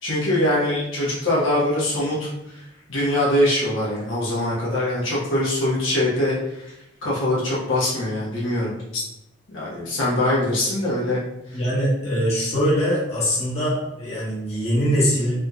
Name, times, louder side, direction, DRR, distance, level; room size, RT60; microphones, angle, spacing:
voice 1, 0.0-2.3 2.9-6.7 7.0-9.0 9.5-11.2, left 1 dB, 75° left, -7 dB, 1.2 m, -23 dB
voice 2, 11.5-15.4, equal, 35° left, -8 dB, 1.1 m, -22 dB
3.5 x 2.8 x 2.4 m, 0.87 s
head